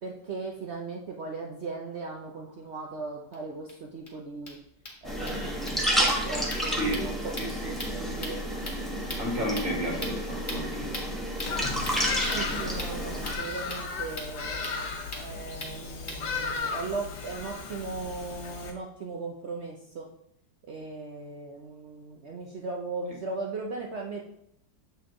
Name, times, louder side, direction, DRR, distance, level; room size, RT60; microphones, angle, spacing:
voice 1, 0.0-4.6 5.0-8.4 12.3-14.8 15.1-20.1 20.7-24.3, right 3 dB, 80° right, 0 dB, 0.6 m, -38 dB
sound 1, 3.3-3.4 3.7-3.8 4.1-4.2 4.4-16.6, left 1 dB, 25° left, 1.4 m, -42 dB
sound 2, 5.0-13.3, equal, ahead, 0.6 m, -31 dB
voice 2, 9.2-10.9, equal, 30° right, -3 dB, 2.1 m, -31 dB
Bird vocalization bird call bird song, 11.4-18.7, left 4 dB, 70° left, 1.5 m, -35 dB
7.2 x 4.4 x 3.7 m, 0.72 s
omnidirectional pair, 2.1 m